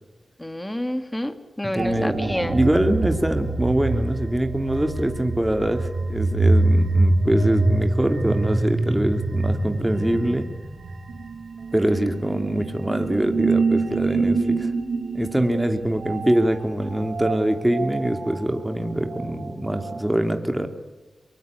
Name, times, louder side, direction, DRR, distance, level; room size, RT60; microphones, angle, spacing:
voice 1, 0.4-2.6, left 1 dB, 10° left, 10 dB, 2.4 m, -28 dB
voice 2, 1.6-2.2 2.4-10.5 11.7-14.7 15.1-20.7, right 1 dB, 10° right, 6 dB, 2.8 m, -23 dB
sound 1, 1.8-20.0, right 2 dB, 75° right, 4.9 m, -25 dB
23.0 x 23.0 x 8.3 m, 1.2 s
cardioid pair, 65°, 0 cm